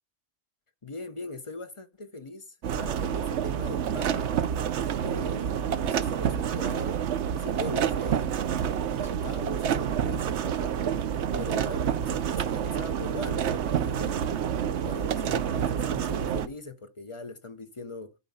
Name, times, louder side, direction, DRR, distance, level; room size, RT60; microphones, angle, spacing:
voice 1, 0.8-4.3 5.0-7.0 7.4-8.3 8.8-10.8 11.3-14.4 14.8-18.2, left 3 dB, 30° left, 0.8 m, -41 dB
sound 1, 2.6-16.5, right 8 dB, 80° right, 1.0 m, -28 dB
12.5 x 4.7 x 5.5 m
omnidirectional pair, 1.2 m